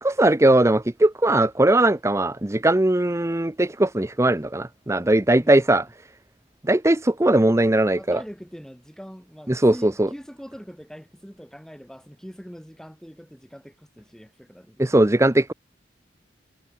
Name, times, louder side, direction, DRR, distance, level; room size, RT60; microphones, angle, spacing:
voice 1, 0.0-5.8 6.7-8.2 9.5-10.1 14.8-15.5, right 1 dB, 15° right, 0.6 m, -19 dB
voice 2, 5.4-5.9 7.9-15.0, equal, 5° left, 7.2 m, -43 dB
head